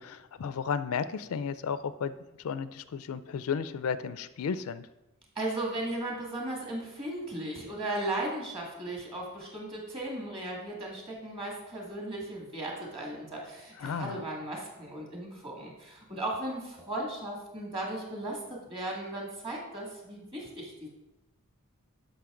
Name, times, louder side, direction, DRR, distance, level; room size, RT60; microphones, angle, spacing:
voice 1, 0.0-4.9 13.8-14.2, left 6 dB, 75° left, 14 dB, 0.4 m, -34 dB
voice 2, 5.4-20.9, right 1 dB, 25° right, -1 dB, 2.0 m, -36 dB
11.5 x 5.5 x 3.8 m, 0.99 s
head